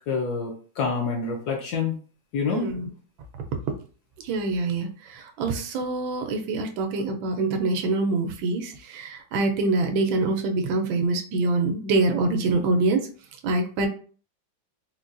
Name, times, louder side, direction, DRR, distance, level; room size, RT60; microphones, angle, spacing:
voice 1, 0.1-2.0 2.3-2.7, left 5 dB, 70° left, 2 dB, 1.0 m, -27 dB
voice 2, 2.5-2.9 4.2-13.0 13.4-13.9, right 3 dB, 85° right, 5 dB, 1.4 m, -25 dB
4.1 x 2.2 x 2.4 m, 0.41 s
omnidirectional pair, 2.1 m